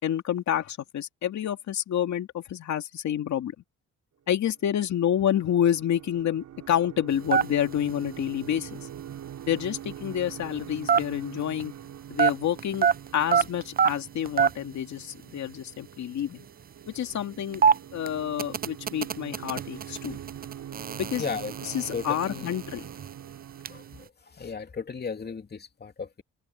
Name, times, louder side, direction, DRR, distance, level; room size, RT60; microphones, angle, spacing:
voice 1, 0.0-3.5 4.3-8.9 9.5-11.7 12.1-12.9 13.1-16.5 16.9-17.6 17.9-20.2 21.0-21.2 21.6-22.9, left 10 dB, 65° left, 2.4 m, -28 dB
sound 1, 4.6-24.1, right 10 dB, 70° right, 7.2 m, -44 dB
sound 2, 7.1-11.9 12.2-14.8 15.0-15.1 15.3-15.6 16.1-23.8, right 7 dB, 30° right, 0.5 m, -27 dB
voice 2, 21.2-21.5 21.9-22.5 23.7-26.2, left 5 dB, 35° left, 2.7 m, -35 dB
open air
cardioid pair, 90°, 30 cm